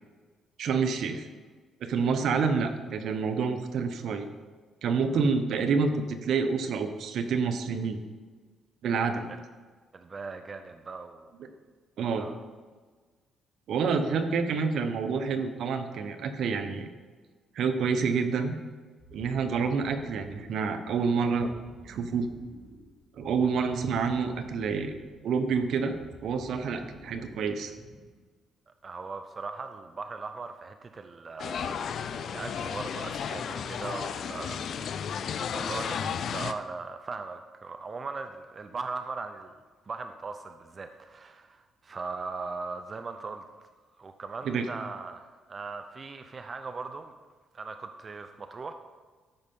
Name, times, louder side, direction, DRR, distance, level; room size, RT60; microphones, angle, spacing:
voice 1, 0.6-1.3 1.8-4.3 4.8-8.0 8.8-9.2 11.4-11.5 12.0-12.3 13.7-16.9 17.5-18.5 19.1-21.5 21.8-22.3 23.2-24.9 25.2-27.7 44.4-44.7, right 5 dB, 70° right, 8 dB, 1.0 m, -28 dB
voice 2, 9.9-11.3 12.2-12.4 23.6-23.7 28.7-39.5 39.8-43.4 44.0-47.1 47.5-48.7, right 4 dB, 40° right, 7 dB, 0.6 m, -39 dB
sound 1, 19.0-28.2, equal, 5° left, 3.6 m, -51 dB
sound 2, 31.4-36.5, left 7 dB, 65° left, 0.5 m, -33 dB
13.0 x 5.6 x 5.4 m, 1.4 s
cardioid pair, 90°, 0 cm